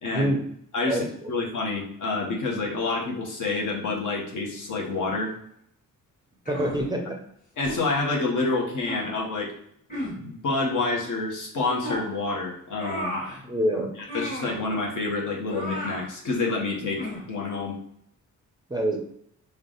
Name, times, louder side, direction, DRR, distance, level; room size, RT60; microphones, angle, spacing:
voice 1, 0.0-0.3 0.7-5.3 7.6-9.5 10.2-13.2 14.1-17.0 17.3-17.8, left 3 dB, 65° left, -1 dB, 1.0 m, -28 dB
sound 1, 6.5-6.9 7.6-7.8 8.8-9.1 9.9-10.2 11.8-12.1 12.8-13.4 14.1-14.6 15.5-16.1 17.0-17.3, equal, 25° left, 1.2 m, -33 dB
voice 2, 6.5-7.2 13.4-13.9 18.7-19.0, right 1 dB, 15° right, 2 dB, 0.4 m, -25 dB
3.3 x 2.3 x 3.8 m, 0.69 s
cardioid pair, 120°, 33 cm